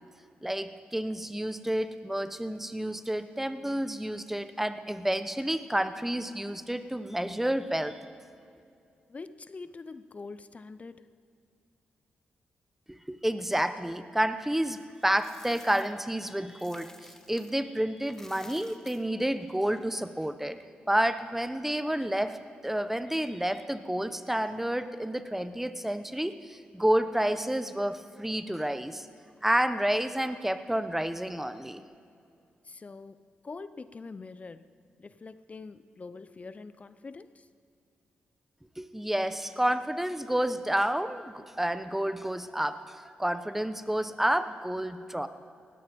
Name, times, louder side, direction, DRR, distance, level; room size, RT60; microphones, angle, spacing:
voice 1, 0.4-8.0 12.9-20.6 20.9-22.4 22.6-29.1 29.4-31.8 38.8-45.3, right 1 dB, 5° right, 11 dB, 1.0 m, -30 dB
voice 2, 9.1-11.1 32.6-33.2 33.4-34.7 35.0-37.5, left 4 dB, 35° left, 14 dB, 0.7 m, -44 dB
Coin (dropping), 14.8-17.6 18.0-20.2, left 1 dB, 10° left, 1.3 m, -53 dB
19.0 x 14.5 x 5.3 m, 2.5 s
cardioid pair, 65°, 4 cm